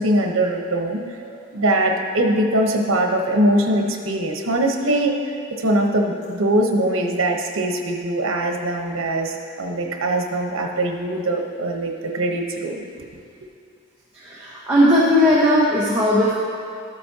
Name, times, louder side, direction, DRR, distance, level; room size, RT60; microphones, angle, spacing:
voice 1, 0.0-5.2 5.5-13.1, right 1 dB, 80° right, 2 dB, 1.0 m, -22 dB
voice 2, 14.1-16.3, left 1 dB, 10° right, -9 dB, 1.1 m, -17 dB
13.0 x 8.3 x 2.8 m, 2.3 s
head